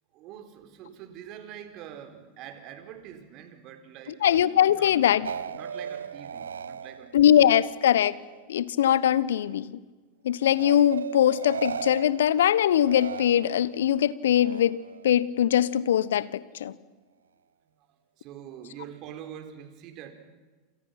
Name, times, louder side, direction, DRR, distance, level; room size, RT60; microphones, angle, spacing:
voice 1, 0.1-5.2 5.6-7.3 17.7-17.8 18.2-20.1, right 9 dB, 50° right, 4.3 m, -45 dB
voice 2, 4.2-5.3 7.1-8.1 8.5-9.8 10.2-16.7, left 10 dB, 75° left, 1.0 m, -22 dB
sound 1, 5.2-8.4 8.8-9.6 10.6-13.8 14.3-15.1, right 7 dB, 85° right, 0.8 m, -37 dB
29.0 x 28.0 x 5.9 m
hypercardioid pair, 90°, 0 cm